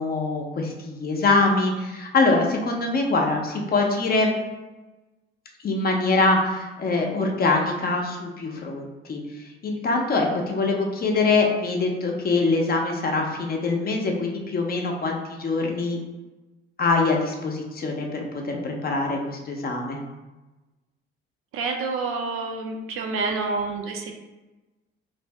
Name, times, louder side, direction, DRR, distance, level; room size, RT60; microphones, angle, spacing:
voice 1, 0.0-4.3 5.6-9.2 9.6-16.0 16.8-20.0, left 3 dB, 30° left, 1 dB, 0.6 m, -24 dB
voice 2, 21.5-24.1, right 3 dB, 45° right, 2 dB, 0.5 m, -28 dB
2.6 x 2.5 x 3.3 m, 1.1 s
figure-of-eight pair, 45°, 32 cm